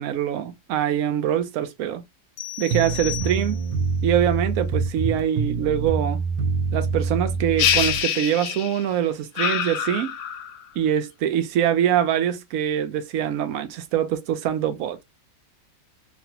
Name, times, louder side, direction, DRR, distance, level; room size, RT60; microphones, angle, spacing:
voice 1, 0.0-2.0 2.6-3.6 4.0-6.2 6.7-10.1 10.8-15.0, right 10 dB, 70° right, 0.8 m, -24 dB
sound 1, 2.4-3.9, left 16 dB, 70° left, 1.2 m, -35 dB
sound 2, 2.7-8.0, right 4 dB, 90° right, 1.3 m, -26 dB
sound 3, 7.6-8.9 9.4-10.6, left 9 dB, 90° left, 1.4 m, -25 dB
3.2 x 2.5 x 2.7 m
omnidirectional pair, 2.0 m